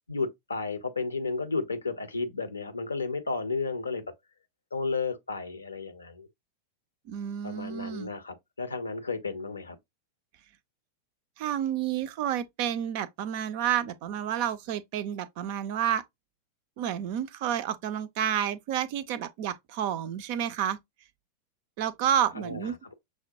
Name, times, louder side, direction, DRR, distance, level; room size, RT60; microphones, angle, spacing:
voice 1, 0.1-4.0 4.7-6.3 7.4-9.8 22.4-22.9, left 4 dB, 75° left, 0.6 m, -33 dB
voice 2, 7.1-8.1 11.4-16.0 16.8-20.8 21.8-22.8, right 10 dB, 45° right, 0.3 m, -30 dB
6.0 x 2.1 x 2.6 m
figure-of-eight pair, 90°, 0 cm